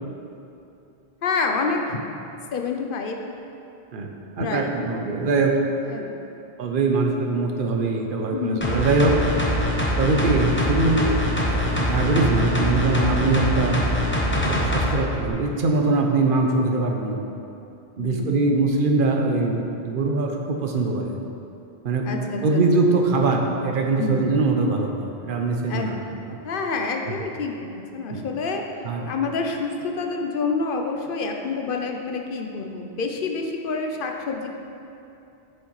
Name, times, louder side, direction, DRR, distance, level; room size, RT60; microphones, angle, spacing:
voice 1, 1.2-2.0 2.5-3.2 4.4-4.8 5.9-6.3 8.3-8.6 18.0-18.6 22.0-22.6 24.0-24.3 25.7-25.9 26.4-28.6 29.1-34.5, left 4 dB, 60° left, 3 dB, 0.7 m, -28 dB
voice 2, 4.4-5.5 6.6-9.1 10.0-13.8 14.4-17.2 18.0-20.3 20.6-21.1 21.8-22.0 22.4-26.0 26.3-26.4 27.1-27.2 28.1-28.2 28.8-29.1, right 3 dB, 60° right, 2 dB, 0.8 m, -22 dB
sound 1, 8.6-14.9 15.3-15.4, equal, 10° left, 0.7 m, -23 dB
7.8 x 6.4 x 3.1 m, 2.7 s
omnidirectional pair, 1.1 m